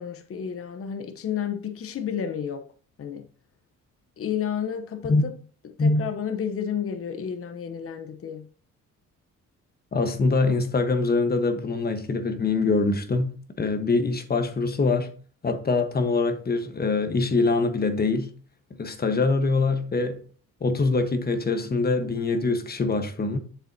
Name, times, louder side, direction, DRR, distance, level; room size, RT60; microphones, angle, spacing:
voice 1, 0.0-2.6 3.0-3.3 4.2-5.3 5.6-8.5, left 8 dB, 50° left, 0.9 m, -31 dB
voice 2, 9.9-15.1 15.4-18.3 18.8-20.2 20.6-23.4, left 3 dB, 30° left, 1.3 m, -24 dB
7.8 x 6.7 x 2.8 m
cardioid pair, 90°, 30 cm